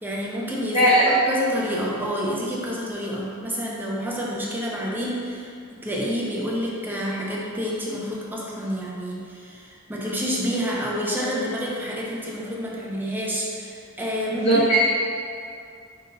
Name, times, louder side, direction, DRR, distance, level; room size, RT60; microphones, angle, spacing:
voice 1, 0.0-14.6, equal, 10° right, -4 dB, 0.6 m, -29 dB
voice 2, 0.7-1.1 14.3-14.9, equal, 30° left, -9 dB, 0.7 m, -18 dB
5.2 x 3.8 x 2.7 m, 2.3 s
head